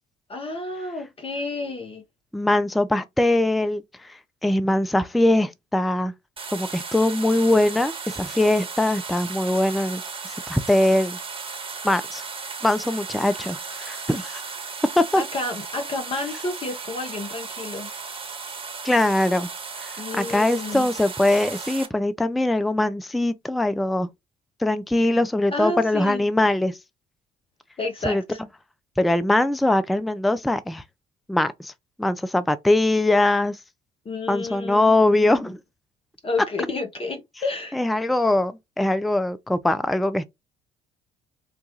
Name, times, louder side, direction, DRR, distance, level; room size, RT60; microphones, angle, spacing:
voice 1, 0.3-2.0 15.2-17.9 20.0-20.9 25.5-26.2 27.8-28.4 34.0-35.5 36.2-37.8, left 3 dB, 30° left, 0.9 m, -30 dB
voice 2, 2.3-6.1 6.5-11.2 11.8-12.2 12.6-14.4 15.0-15.2 18.8-19.5 19.8-24.1 24.6-26.8 28.0-28.2 29.0-30.8 31.3-31.7 32.0-33.6 34.3-35.6 37.7-40.2, left 1 dB, ahead, 0.3 m, -22 dB
sound 1, 6.4-21.9, right 5 dB, 30° right, 1.2 m, -35 dB
3.9 x 2.2 x 2.9 m
hypercardioid pair, 55°, 19 cm